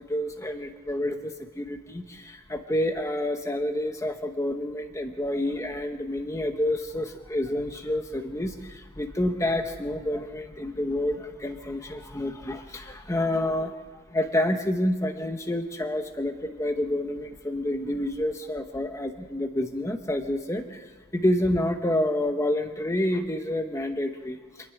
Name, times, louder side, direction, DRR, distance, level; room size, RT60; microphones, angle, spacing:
voice 1, 0.0-13.8 14.1-20.9 21.1-24.4, left 1 dB, 15° left, 5 dB, 1.1 m, -28 dB
26.0 x 10.5 x 10.0 m, 1.5 s
head